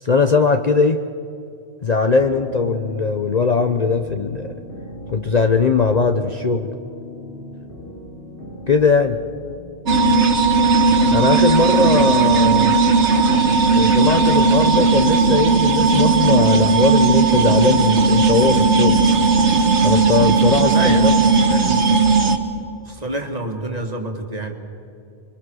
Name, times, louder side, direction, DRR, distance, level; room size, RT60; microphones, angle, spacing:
voice 1, 0.0-1.0 1.8-4.5 5.1-6.7 8.7-9.2 11.1-12.7 13.7-19.0 19.8-21.1, left 4 dB, 40° left, 7 dB, 0.8 m, -19 dB
sound 1, 2.2-9.5, left 2 dB, 70° left, 4.2 m, -37 dB
sound 2, 9.9-22.4, right 4 dB, 75° right, 1.7 m, -16 dB
voice 2, 20.7-22.0 22.8-24.5, right 1 dB, 35° right, 3 dB, 2.1 m, -28 dB
26.5 x 22.5 x 6.3 m, 2.5 s
omnidirectional pair, 1.2 m